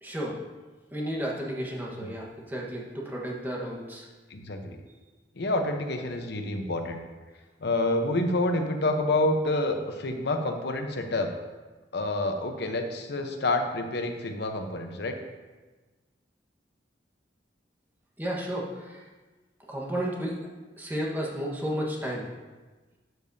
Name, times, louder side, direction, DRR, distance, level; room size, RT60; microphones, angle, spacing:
voice 1, 0.0-0.3 0.9-4.1 18.2-19.0 19.7-20.4 20.8-22.3, equal, 10° right, -3 dB, 1.3 m, -32 dB
voice 2, 4.3-4.8 5.3-7.0 7.6-11.3 11.9-15.2, left 2 dB, 70° left, 5 dB, 0.9 m, -28 dB
12.5 x 7.0 x 2.7 m, 1.3 s
head